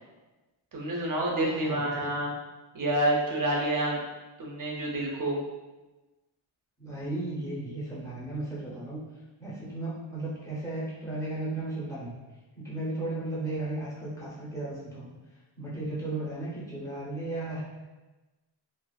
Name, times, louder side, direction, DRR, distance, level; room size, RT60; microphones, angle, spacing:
voice 1, 0.7-2.3 2.7-4.0 4.4-5.4, right 1 dB, 45° right, -2 dB, 0.5 m, -28 dB
voice 2, 1.5-2.1 6.8-9.0 9.4-12.2 12.6-15.1 15.6-17.6, right 2 dB, 5° left, -9 dB, 0.7 m, -35 dB
2.4 x 2.4 x 2.2 m, 1.1 s
wide cardioid pair, 170°, 48 cm